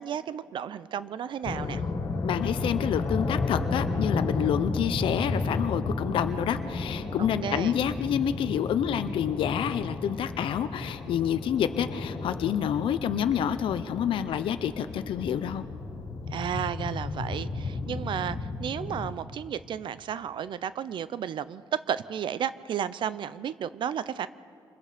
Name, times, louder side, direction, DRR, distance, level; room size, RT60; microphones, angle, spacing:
voice 1, 0.0-1.8 7.2-7.7 16.3-21.6 21.9-24.3, right 9 dB, 65° right, 15 dB, 0.6 m, -33 dB
sound 1, 1.4-19.1, left 3 dB, 50° left, 2.4 m, -33 dB
voice 2, 2.2-15.6, left 9 dB, 75° left, 10 dB, 0.8 m, -28 dB
27.0 x 21.0 x 5.1 m, 2.4 s
cardioid pair, 95°, 9 cm